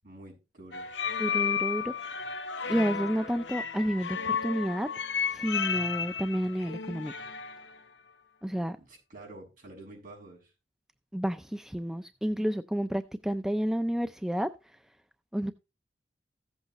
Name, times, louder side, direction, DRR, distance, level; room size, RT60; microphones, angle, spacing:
voice 1, 0.0-0.9 8.8-10.5, right 2 dB, 50° right, 7.0 m, -48 dB
sound 1, 0.7-7.6, left 7 dB, 70° left, 0.8 m, -33 dB
voice 2, 1.2-2.3 2.7-4.9 5.3-7.1 8.4-8.8 11.1-14.5 15.3-15.5, equal, 5° right, 0.4 m, -30 dB
15.5 x 8.0 x 3.0 m
head